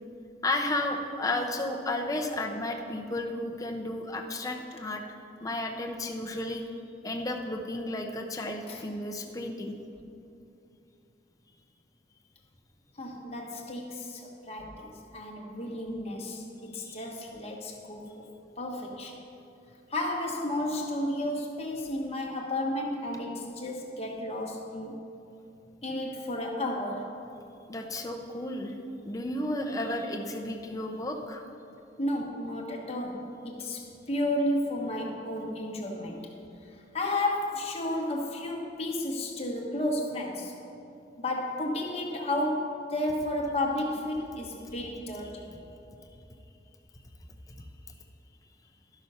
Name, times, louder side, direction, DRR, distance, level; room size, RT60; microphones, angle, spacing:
voice 1, 0.4-5.0 5.4-6.6 7.0-9.8 16.8-17.0 27.7-28.7 29.0-31.4, left 1 dB, 20° left, 2 dB, 0.7 m, -33 dB
voice 2, 12.9-18.3 18.6-19.2 19.9-25.0 25.8-27.1 32.0-36.3 36.6-40.6 41.2-45.5, left 1 dB, 35° left, 0 dB, 1.2 m, -32 dB
12.0 x 6.1 x 5.5 m, 2.7 s
head